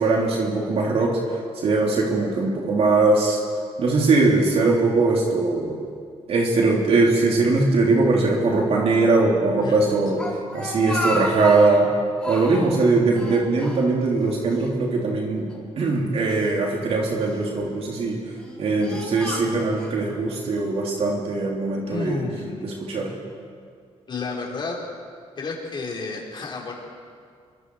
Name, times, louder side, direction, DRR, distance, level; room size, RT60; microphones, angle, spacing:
voice 1, 0.0-3.4 3.8-5.8 6.3-10.2 10.5-11.9 12.3-15.5 15.8-18.2 18.6-22.2 22.6-23.1, right 3 dB, 60° right, -2 dB, 3.5 m, -21 dB
Speech, 10.2-11.9 12.2-12.8 13.1-14.3 14.5-14.7 15.5-16.5 17.2-17.6 18.3-19.9, left 1 dB, 10° left, 4.6 m, -32 dB
voice 2, 21.8-22.8 24.1-24.8 25.4-26.7, left 4 dB, 45° left, -2 dB, 5.3 m, -31 dB
27.0 x 22.5 x 4.9 m, 2.1 s
cardioid pair, 105°, 11 cm